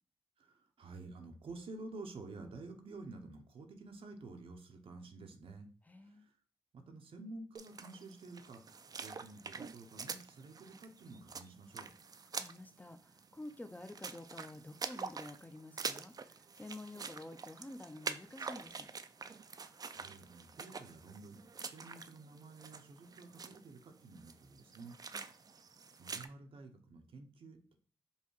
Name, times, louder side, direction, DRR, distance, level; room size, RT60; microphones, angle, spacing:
voice 1, 0.4-5.7 6.0-6.3 6.7-11.9 19.5-25.0 26.0-27.7, right 3 dB, 70° right, 4 dB, 0.7 m, -51 dB
voice 2, 5.9-6.3 12.3-18.9 25.1-25.2, left 1 dB, 15° left, 8 dB, 0.5 m, -50 dB
sound 1, 7.5-26.3, right 5 dB, 40° right, 0.3 m, -46 dB
5.4 x 2.2 x 3.1 m, 0.40 s
cardioid pair, 50°, 10 cm